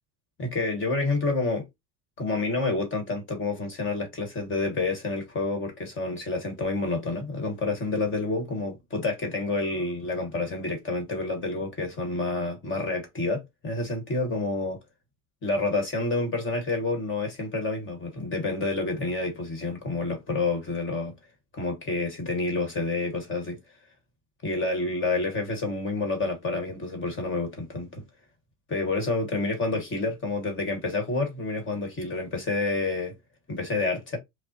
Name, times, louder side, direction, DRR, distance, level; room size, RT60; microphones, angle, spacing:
voice 1, 0.4-1.6 2.2-14.8 15.4-21.1 21.5-23.6 24.4-28.0 28.7-33.1 33.5-34.2, left 3 dB, 25° left, 1.3 m, -28 dB
5.2 x 2.1 x 2.7 m
supercardioid pair, 140°, 46 cm